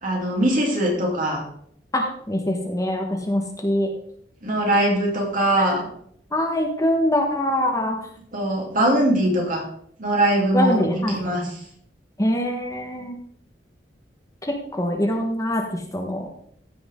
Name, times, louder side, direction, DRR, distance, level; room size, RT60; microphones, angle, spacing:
voice 1, 0.0-1.4 4.4-5.9 8.3-9.6 10.0-11.5, right 1 dB, 50° right, -2 dB, 3.2 m, -21 dB
voice 2, 1.9-3.9 6.3-8.1 10.5-11.2 12.2-13.2 14.4-16.3, left 1 dB, 20° left, 2 dB, 1.2 m, -24 dB
14.5 x 6.1 x 3.7 m, 0.65 s
head